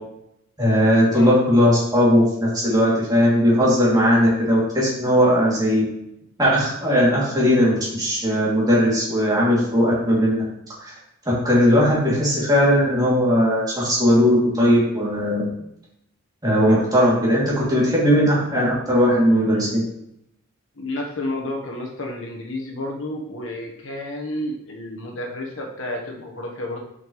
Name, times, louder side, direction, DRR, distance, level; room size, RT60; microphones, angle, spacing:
voice 1, 0.6-5.8 6.4-10.4 10.8-10.9 11.4-15.5 16.4-17.4 17.7-19.8, equal, 20° right, -7 dB, 2.7 m, -18 dB
voice 2, 20.8-26.8, left 1 dB, 70° left, 0 dB, 1.3 m, -31 dB
7.8 x 5.8 x 3.2 m, 0.79 s
head